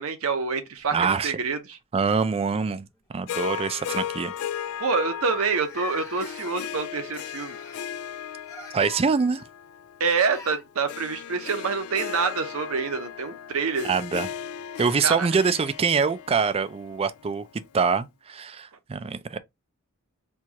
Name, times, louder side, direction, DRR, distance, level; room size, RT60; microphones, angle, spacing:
voice 1, 0.0-1.8 4.8-7.6 10.0-13.9 15.0-15.3, right 5 dB, 70° right, 0.8 m, -27 dB
sound 1, 0.8-1.9 3.0-3.1 3.5-3.7 4.4-4.5 4.7-4.8 5.4-6.8 7.3-7.9 8.4-9.0 10.1-10.6 12.8-12.9 13.9-14.0, left 3 dB, 15° left, 1.0 m, -44 dB
voice 2, 0.9-1.3 1.9-2.9 3.1-4.3 8.7-9.4 13.8-14.3 14.8-17.4 17.7-19.4, right 5 dB, 25° right, 0.3 m, -24 dB
Harp, 3.3-17.7, left 9 dB, 85° left, 0.3 m, -37 dB
4.4 x 2.4 x 2.8 m
head